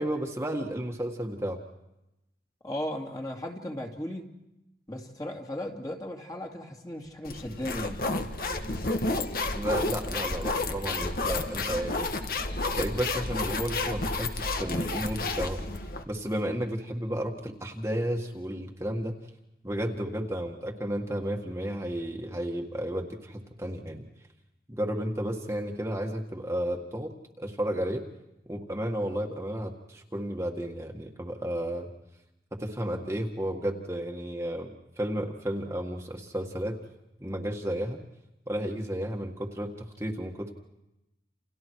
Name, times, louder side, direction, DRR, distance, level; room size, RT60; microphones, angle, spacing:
voice 1, 0.0-1.6 9.5-12.1 12.7-15.6 16.1-19.1 19.6-24.1 24.7-28.1 28.5-31.9 32.5-34.7 35.0-36.8 37.2-38.0 38.5-40.5, equal, 15° right, 1 dB, 1.7 m, -32 dB
voice 2, 2.6-4.3 4.9-8.0, left 1 dB, 20° left, 2 dB, 2.5 m, -36 dB
sound 1, 7.3-16.0, left 2 dB, 55° left, 1.7 m, -31 dB
29.5 x 28.5 x 4.7 m, 0.92 s
head